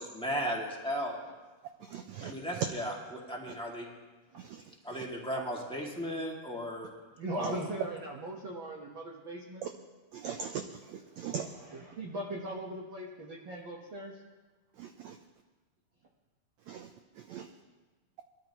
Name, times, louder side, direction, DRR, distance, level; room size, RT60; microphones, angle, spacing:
voice 1, 0.2-1.2 2.2-2.9 3.3-3.9 4.8-6.9 7.4-7.5, equal, 5° left, 1.1 m, -35 dB
voice 2, 1.8-2.7 3.5-3.6 4.4-5.0 7.4-7.5 9.6-9.7 10.1-11.5 14.8-15.2 16.7-17.5, right 8 dB, 85° right, 1.6 m, -40 dB
voice 3, 7.2-9.6 11.9-14.1, right 1 dB, 60° right, 1.3 m, -38 dB
22.0 x 13.0 x 3.0 m
omnidirectional pair, 4.0 m